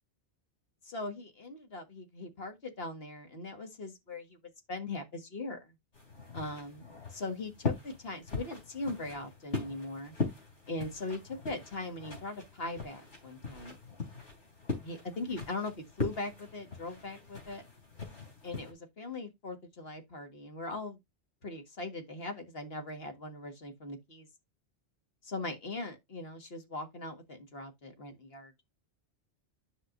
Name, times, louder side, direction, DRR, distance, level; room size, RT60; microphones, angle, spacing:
voice 1, 0.8-4.4 4.7-5.8 6.3-10.1 10.7-13.8 14.8-17.6 18.4-21.0 21.4-24.3 25.2-28.5, left 2 dB, 55° left, 1.9 m, -40 dB
sound 1, 5.9-18.7, left 3 dB, 90° left, 3.5 m, -40 dB
10.0 x 6.0 x 2.6 m
omnidirectional pair, 1.2 m